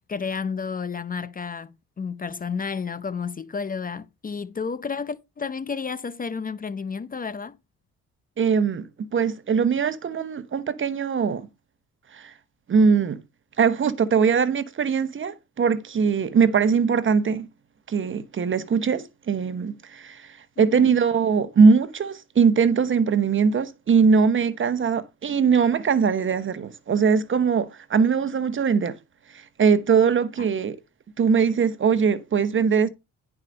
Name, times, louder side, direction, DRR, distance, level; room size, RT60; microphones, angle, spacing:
voice 1, 0.1-7.6 20.6-20.9 30.4-30.5, left 5 dB, 30° left, 0.6 m, -31 dB
voice 2, 8.4-8.8 9.1-11.5 12.1-12.3 12.7-13.2 13.6-17.5 17.9-29.0 29.3-30.8 31.2-32.9, right 6 dB, 40° right, 1.1 m, -21 dB
10.5 x 4.9 x 5.2 m
cardioid pair, 90°, 30 cm